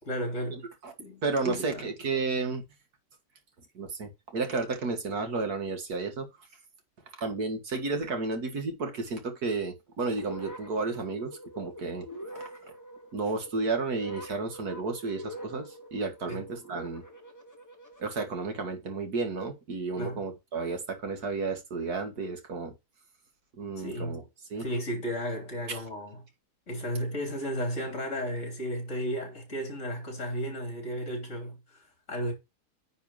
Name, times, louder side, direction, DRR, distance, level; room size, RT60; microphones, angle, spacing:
voice 1, 0.0-0.7 1.0-1.9 16.3-16.5 20.0-20.2 23.8-24.2 24.5-26.2 26.7-32.3, equal, 45° left, 3.8 m, -34 dB
voice 2, 1.2-2.6 3.8-6.3 7.2-12.0 12.4-12.5 13.1-17.0 18.0-22.7 23.6-24.2 24.5-24.6, right 3 dB, 65° right, 2.2 m, -32 dB
sound 1, 10.1-18.1, right 1 dB, 10° left, 1.2 m, -44 dB
9.7 x 4.0 x 5.6 m
omnidirectional pair, 1.8 m